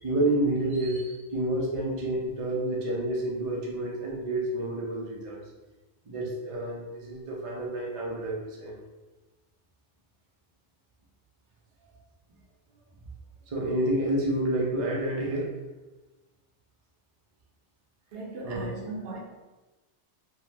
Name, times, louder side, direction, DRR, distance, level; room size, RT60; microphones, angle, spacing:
voice 1, 0.0-5.4 6.1-8.7 13.5-15.5 18.4-18.7, right 1 dB, 45° right, -3 dB, 0.5 m, -29 dB
voice 2, 18.1-19.2, right 2 dB, 65° right, -2 dB, 0.8 m, -38 dB
2.7 x 2.1 x 3.2 m, 1.1 s
omnidirectional pair, 1.2 m